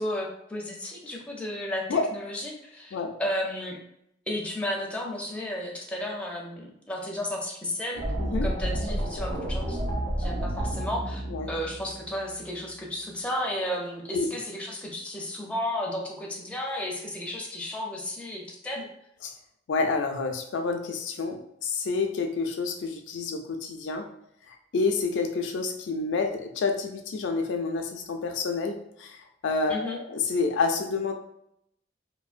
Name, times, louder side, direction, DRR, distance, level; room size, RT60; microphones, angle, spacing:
voice 1, 0.0-3.8 4.3-8.0 8.4-11.2 11.5-18.9 29.7-30.0, left 1 dB, 5° left, -2 dB, 0.4 m, -33 dB
sound 1, 8.0-12.9, right 1 dB, 75° right, 0.8 m, -31 dB
voice 2, 8.2-8.5 11.3-11.5 14.1-14.3 19.2-19.3 19.7-24.1 24.7-29.2 29.4-31.1, left 4 dB, 75° left, 4 dB, 0.4 m, -28 dB
3.3 x 2.1 x 2.4 m, 0.77 s
head